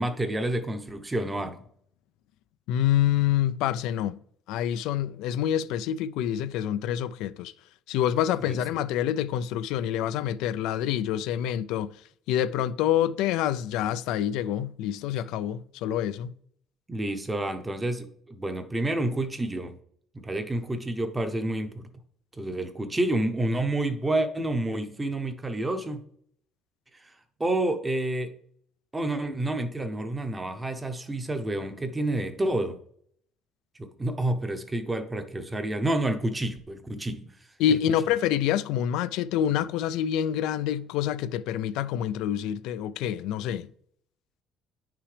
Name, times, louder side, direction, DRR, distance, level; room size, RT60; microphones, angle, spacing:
voice 1, 0.0-1.7 8.4-8.6 16.9-19.8 20.1-21.9 22.4-26.0 26.9-27.1 27.4-28.3 28.9-32.8 33.8-37.3 37.7-37.8, right 1 dB, 10° right, 0.7 m, -29 dB
voice 2, 2.7-4.2 4.5-7.5 7.9-11.9 12.3-16.3 37.6-43.7, left 10 dB, 80° left, 0.3 m, -27 dB
9.8 x 5.9 x 3.3 m
cardioid pair, 155°, 0 cm